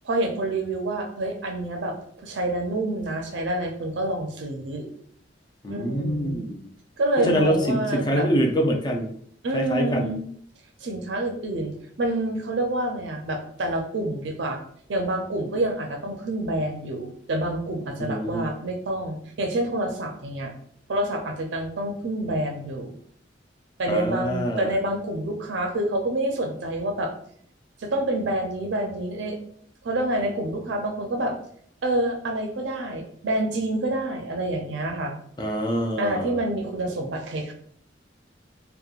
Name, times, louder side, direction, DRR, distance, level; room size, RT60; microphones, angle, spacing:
voice 1, 0.0-4.9 5.7-6.4 7.0-8.3 9.4-10.2 10.8-14.6 14.9-20.5 20.9-22.9 23.8-27.1 27.8-29.4 29.8-31.3 31.8-35.2 36.0-37.5, right 1 dB, 85° right, 4 dB, 0.5 m, -27 dB
voice 2, 5.6-6.6 7.2-9.1 9.5-10.1 18.0-18.5 23.9-24.7 35.4-36.4, equal, 25° left, 2 dB, 0.4 m, -25 dB
2.9 x 2.1 x 2.4 m, 0.62 s
head